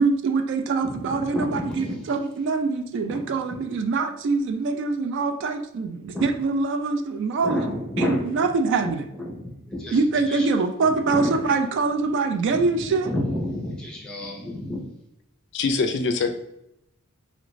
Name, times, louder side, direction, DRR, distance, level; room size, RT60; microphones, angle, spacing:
voice 1, 0.0-9.0 9.9-13.1, right 4 dB, 55° right, 0.3 m, -24 dB
voice 2, 0.8-2.0 3.1-3.2 3.5-3.6 6.1-6.3 7.4-8.2 8.8-8.9 9.3-10.0 10.3-10.5 11.1-11.3 12.5-12.7 13.0-14.8, left 1 dB, 5° left, 0.8 m, -30 dB
voice 3, 15.5-16.3, left 4 dB, 55° left, 0.3 m, -23 dB
3.1 x 2.5 x 3.0 m
head